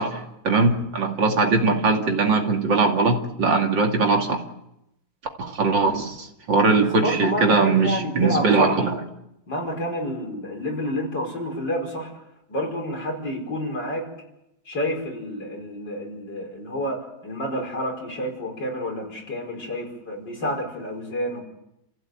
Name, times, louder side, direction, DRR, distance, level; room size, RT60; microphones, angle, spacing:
voice 1, 0.0-4.4 5.4-9.0, right 3 dB, 70° right, 3 dB, 3.2 m, -21 dB
voice 2, 6.9-8.7 9.5-12.1 12.5-14.1 14.7-21.4, left 1 dB, 65° left, 1 dB, 5.7 m, -29 dB
29.0 x 15.5 x 8.9 m, 0.86 s
omnidirectional pair, 2.1 m